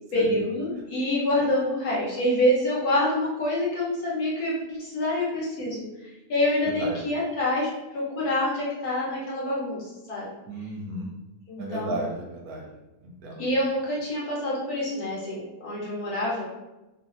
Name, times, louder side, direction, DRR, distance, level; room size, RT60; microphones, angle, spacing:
voice 1, 0.1-10.3 11.5-12.0 13.4-16.5, left 1 dB, 70° left, -5 dB, 1.4 m, -26 dB
voice 2, 10.5-11.1 11.6-12.7 13.2-13.4, right 2 dB, 70° right, 0 dB, 1.0 m, -33 dB
3.2 x 2.5 x 2.4 m, 1.0 s
omnidirectional pair, 1.7 m